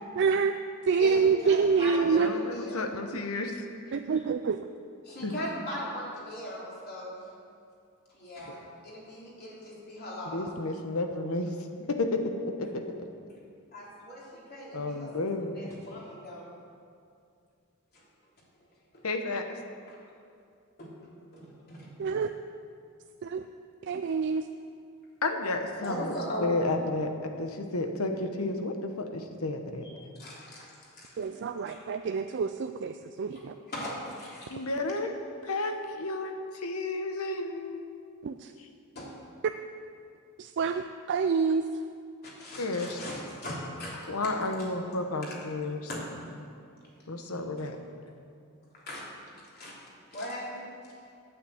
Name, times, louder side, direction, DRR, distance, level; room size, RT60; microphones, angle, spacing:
voice 1, 0.2-0.5 0.8-2.3 3.9-4.6 22.0-22.3 23.2-23.5 23.8-24.5 31.2-33.6 38.2-38.5 40.4-40.8 41.1-41.7, right 5 dB, 55° right, 7 dB, 0.4 m, -27 dB
voice 2, 1.0-3.1 3.4-3.5 5.0-7.2 8.1-8.6 8.8-10.5 13.7-16.5 17.9-18.0 18.9-19.0 19.9-20.0 20.8-20.9 21.3-21.9 25.8-26.5 29.8-31.3 31.6-31.8 33.3-33.4 33.7-34.7 38.9-39.1 42.2-44.1 44.6-44.7 45.2-45.4 45.9-46.0 48.7-49.0 49.5-49.7 50.1-50.7, equal, 45° left, -5 dB, 3.4 m, -39 dB
voice 3, 2.2-3.6 5.2-5.3 10.3-11.5 11.9-12.2 12.6-12.8 14.7-15.5 19.0-19.5 25.2-26.1 26.4-29.9 34.5-35.1 35.4-37.8 42.6-43.0 44.1-45.8 47.1-47.8, left 2 dB, 75° left, 5 dB, 1.1 m, -31 dB
9.1 x 9.0 x 7.9 m, 2.4 s
head